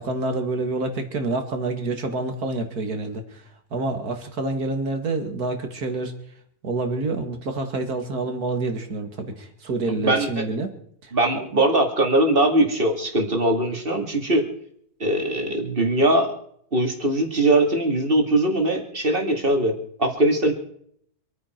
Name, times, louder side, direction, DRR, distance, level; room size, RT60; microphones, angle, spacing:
voice 1, 0.0-3.4 3.7-6.1 6.6-10.7 11.0-11.5, right 2 dB, 70° right, 6 dB, 2.5 m, -28 dB
voice 2, 9.9-10.4 11.1-14.5 15.0-16.3 16.7-20.5, right 1 dB, 35° right, 3 dB, 2.6 m, -21 dB
26.5 x 9.7 x 4.5 m, 0.66 s
omnidirectional pair, 1.7 m